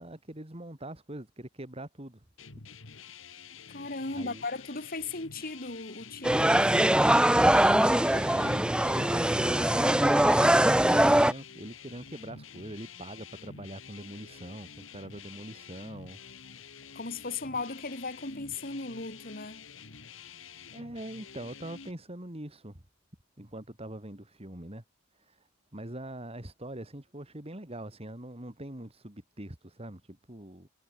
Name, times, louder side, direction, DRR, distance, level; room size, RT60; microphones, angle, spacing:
voice 1, 0.0-2.2 4.1-4.4 7.3-16.2 16.8-16.9 20.2-22.8 23.4-24.8 25.1-30.7, right 1 dB, 30° right, 2.9 m, -43 dB
sound 1, 2.4-21.9, left 6 dB, 70° left, 2.1 m, -49 dB
voice 2, 3.7-6.8 16.9-19.7, left 3 dB, 45° left, 4.1 m, -37 dB
sound 2, 6.2-11.3, right 1 dB, 5° right, 0.6 m, -22 dB
head